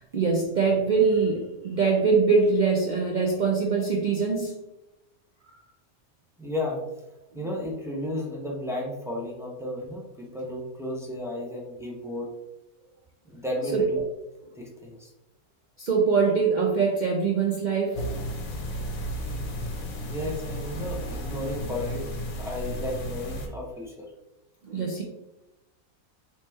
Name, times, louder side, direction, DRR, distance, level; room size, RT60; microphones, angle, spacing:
voice 1, 0.1-4.5 13.7-13.8 15.8-18.0 24.6-25.0, right 5 dB, 80° right, -1 dB, 0.4 m, -23 dB
voice 2, 6.4-6.8 7.3-12.4 13.2-14.0 14.6-15.1 20.1-24.1, left 1 dB, 5° right, -3 dB, 0.3 m, -33 dB
sound 1, 18.0-23.5, equal, 70° left, 1.2 m, -33 dB
4.2 x 3.2 x 3.4 m, 0.94 s
omnidirectional pair, 1.5 m